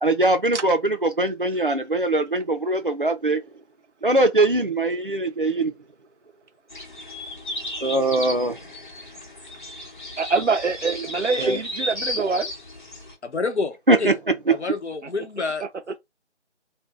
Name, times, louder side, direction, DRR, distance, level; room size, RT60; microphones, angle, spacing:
voice 1, 0.0-3.4 4.0-5.7 7.8-8.6 11.4-11.6 13.9-14.1, right 2 dB, 50° right, 0.5 m, -21 dB
sound 1, 6.7-13.1, left 1 dB, 45° left, 0.8 m, -34 dB
voice 2, 10.2-12.5 15.0-15.1 15.6-16.0, right 4 dB, 90° right, 0.6 m, -25 dB
voice 3, 13.2-14.2 14.5-15.6, left 3 dB, 70° left, 0.8 m, -28 dB
2.6 x 2.2 x 3.4 m
figure-of-eight pair, 170°, 35 cm